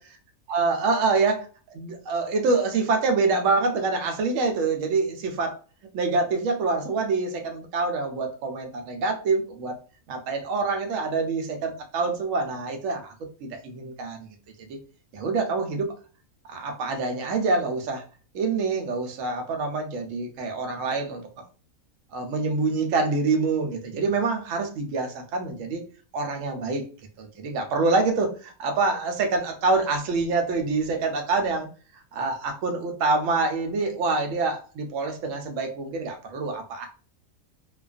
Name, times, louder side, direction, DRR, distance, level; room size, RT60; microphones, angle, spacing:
voice 1, 0.5-1.4 1.7-5.6 5.9-9.8 10.1-13.1 13.4-14.3 14.6-14.8 15.1-15.9 16.5-18.0 18.3-21.4 22.1-25.8 26.1-26.9 27.2-31.7 32.1-36.9, right 3 dB, 70° right, 4 dB, 0.9 m, -26 dB
2.4 x 2.3 x 2.4 m, 0.37 s
omnidirectional pair, 1.5 m